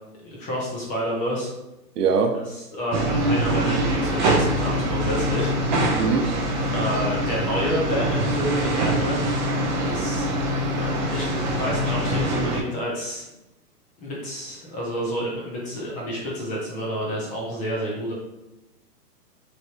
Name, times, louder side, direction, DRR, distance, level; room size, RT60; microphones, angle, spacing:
voice 1, 0.2-1.5 2.3-5.6 6.7-9.2 9.8-10.3 10.7-13.3 14.0-18.1, equal, 15° left, -4 dB, 0.7 m, -29 dB
voice 2, 2.0-2.4 6.0-6.3, right 5 dB, 75° right, 6 dB, 0.7 m, -21 dB
sound 1, 2.9-12.6, right 1 dB, 30° right, 0.4 m, -24 dB
3.2 x 2.5 x 4.3 m, 0.94 s
hypercardioid pair, 145°, 48 cm